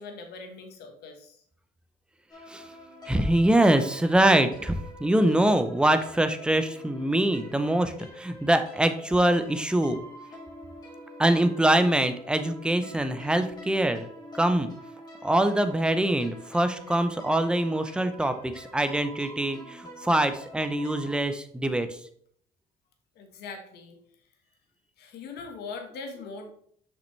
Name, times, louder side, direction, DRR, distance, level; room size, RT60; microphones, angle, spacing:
voice 1, 0.0-1.4 23.1-24.0 25.0-26.5, left 4 dB, 75° left, 4 dB, 1.4 m, -41 dB
sound 1, 2.3-21.2, equal, 25° left, 2.4 m, -46 dB
voice 2, 3.1-10.0 11.2-14.1 14.3-14.7 15.2-22.0, right 1 dB, 5° right, 8 dB, 0.6 m, -24 dB
6.3 x 5.2 x 3.2 m, 0.63 s
cardioid pair, 110°, 17 cm